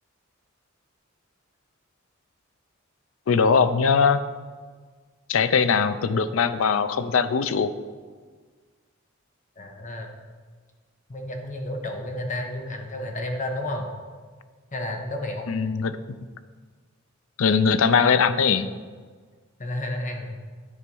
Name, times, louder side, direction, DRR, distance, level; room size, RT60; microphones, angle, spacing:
voice 1, 3.3-4.2 5.3-7.7 15.5-16.0 17.4-18.7, left 5 dB, 80° left, 13 dB, 0.5 m, -21 dB
voice 2, 9.6-10.1 11.1-13.9 14.7-15.5 19.6-20.4, left 1 dB, 40° left, 3 dB, 1.0 m, -31 dB
9.9 x 4.4 x 5.3 m, 1.5 s
head